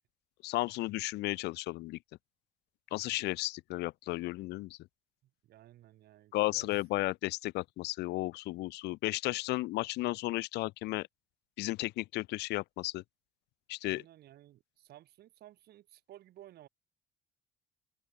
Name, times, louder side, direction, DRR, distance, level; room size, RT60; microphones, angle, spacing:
voice 1, 0.4-2.0 2.9-4.8 6.3-11.1 11.6-13.0 13.7-14.0, left 19 dB, 80° left, 0.7 m, -34 dB
voice 2, 5.2-6.7 13.8-16.7, right 13 dB, 70° right, 6.0 m, -56 dB
open air
cardioid pair, 110°, 17 cm